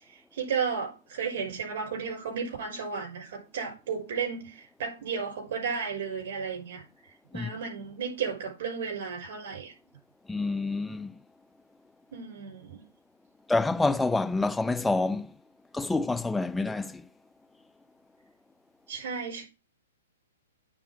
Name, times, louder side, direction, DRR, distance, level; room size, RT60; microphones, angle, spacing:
voice 1, 0.3-6.8 7.3-9.7 12.1-12.8 18.9-19.4, right 6 dB, 50° right, 5.9 m, -33 dB
voice 2, 10.3-11.1 13.5-15.3 15.7-17.0, left 3 dB, 5° left, 0.3 m, -27 dB
9.0 x 4.3 x 6.2 m
figure-of-eight pair, 115°, 0 cm